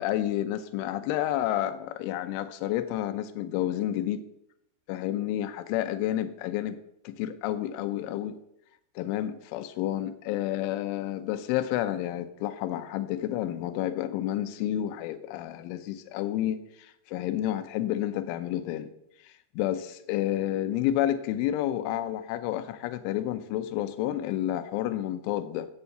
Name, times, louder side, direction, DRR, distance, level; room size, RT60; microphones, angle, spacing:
voice 1, 0.0-4.2 4.9-6.8 7.0-8.4 9.0-18.9 19.2-25.7, left 12 dB, 90° left, 11 dB, 3.3 m, -30 dB
9.8 x 8.7 x 7.8 m, 0.78 s
omnidirectional pair, 5.4 m